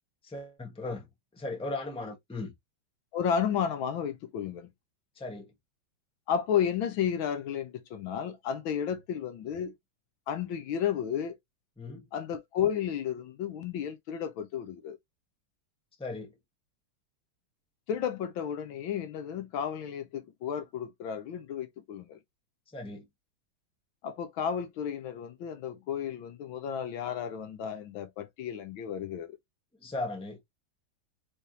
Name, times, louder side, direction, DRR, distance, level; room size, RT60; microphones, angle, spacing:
voice 1, 0.2-1.0 1.3-2.5 5.2-5.5 11.8-12.1 16.0-16.3 22.7-23.0 29.8-30.4, left 2 dB, 5° left, 1.0 m, -37 dB
voice 2, 3.1-4.7 6.3-9.7 10.3-11.4 12.1-15.0 17.9-22.2 24.0-29.4, left 8 dB, 75° left, 1.5 m, -32 dB
4.3 x 3.5 x 2.8 m
omnidirectional pair, 2.3 m